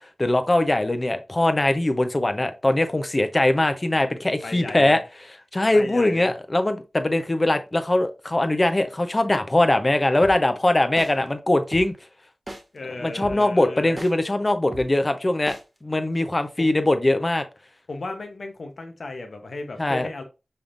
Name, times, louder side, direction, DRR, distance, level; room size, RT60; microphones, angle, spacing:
voice 1, 0.2-5.0 5.5-11.9 13.0-15.6 15.8-17.4 19.8-20.1, left 1 dB, 35° left, 0.7 m, -21 dB
voice 2, 4.4-5.0 5.7-6.3 12.7-14.0 16.6-16.7 17.9-20.2, left 2 dB, 70° left, 0.9 m, -35 dB
sound 1, 10.2-10.3 11.0-11.1 11.7-11.8 12.5-12.6 13.2-13.3 14.0-14.1 14.7-14.8 15.5-15.6, right 1 dB, 35° right, 1.2 m, -35 dB
5.5 x 3.5 x 2.5 m
cardioid pair, 45°, 0 cm